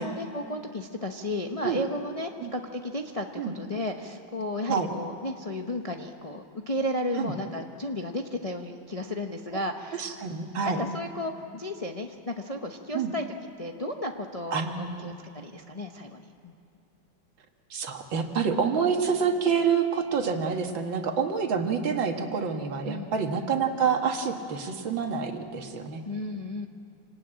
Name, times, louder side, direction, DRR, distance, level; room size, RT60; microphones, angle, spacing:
voice 1, 0.0-10.2 10.8-13.3 13.6-16.5 22.8-23.1 26.0-26.7, left 1 dB, 35° left, 3 dB, 0.6 m, -33 dB
voice 2, 9.9-10.8 12.9-13.1 14.5-15.2 17.7-26.0, right 6 dB, 80° right, 4 dB, 2.2 m, -27 dB
26.5 x 19.5 x 8.8 m, 2.5 s
omnidirectional pair, 2.1 m